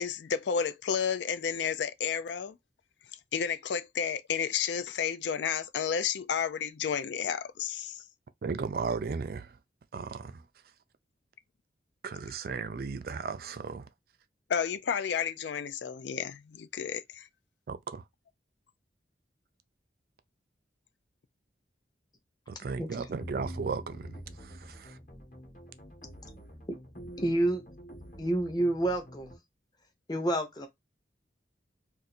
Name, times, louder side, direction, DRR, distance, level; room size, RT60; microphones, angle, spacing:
voice 1, 0.0-2.6 3.3-8.0 14.5-17.3, left 7 dB, 75° left, 0.4 m, -31 dB
voice 2, 8.4-9.6 9.9-10.4 12.0-13.9 17.7-18.0 22.5-25.0, right 5 dB, 55° right, 0.3 m, -35 dB
sound 1, 22.9-29.4, equal, 45° left, 1.1 m, -46 dB
voice 3, 27.2-27.6 28.2-29.3 30.1-30.7, right 1 dB, 20° left, 0.6 m, -28 dB
2.6 x 2.5 x 4.1 m
head